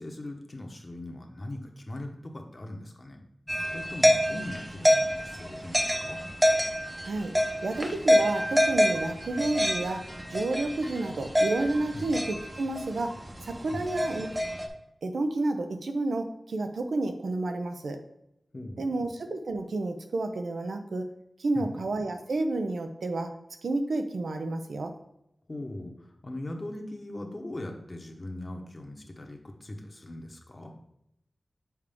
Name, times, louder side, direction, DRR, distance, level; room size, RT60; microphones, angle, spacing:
voice 1, 0.0-6.2 11.9-12.1 13.7-14.3 18.5-19.0 21.5-21.8 25.5-30.7, left 1 dB, 35° left, 3 dB, 1.1 m, -40 dB
sound 1, 3.5-14.7, equal, 20° right, 0.8 m, -27 dB
voice 2, 7.6-13.2 13.4-14.3 15.0-18.0 18.8-21.1 21.4-23.3 23.6-24.9, right 2 dB, 85° right, 6 dB, 0.7 m, -30 dB
7.2 x 4.7 x 3.6 m, 0.80 s
wide cardioid pair, 75°, 0 cm